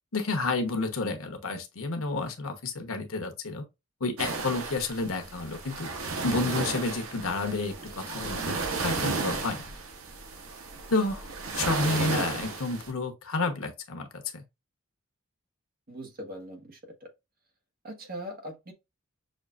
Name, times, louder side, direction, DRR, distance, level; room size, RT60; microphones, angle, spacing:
voice 1, 0.1-3.6 4.0-5.9 6.2-9.7 10.9-11.3 11.5-14.4, left 3 dB, 85° left, 1.0 m, -30 dB
sound 1, 4.2-12.9, right 4 dB, 80° right, 1.0 m, -33 dB
voice 2, 15.9-17.1 17.8-18.7, equal, 45° right, 1.2 m, -41 dB
6.3 x 2.4 x 2.4 m
head